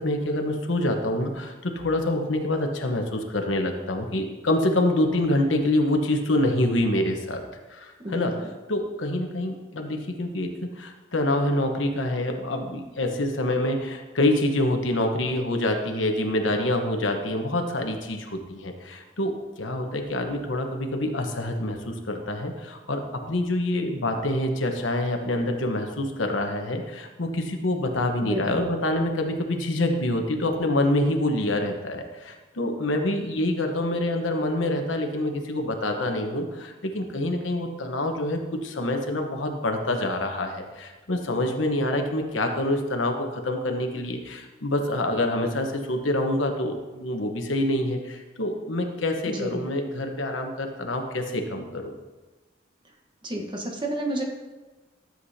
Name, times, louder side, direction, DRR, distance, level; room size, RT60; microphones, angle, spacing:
voice 1, 0.0-7.4 7.7-19.3 19.6-51.9, left 1 dB, 90° left, 4 dB, 1.1 m, -26 dB
voice 2, 8.0-8.5 28.2-28.5 49.3-49.6 53.2-54.2, right 1 dB, 25° right, 1 dB, 1.2 m, -31 dB
13.0 x 7.7 x 2.8 m, 1.2 s
head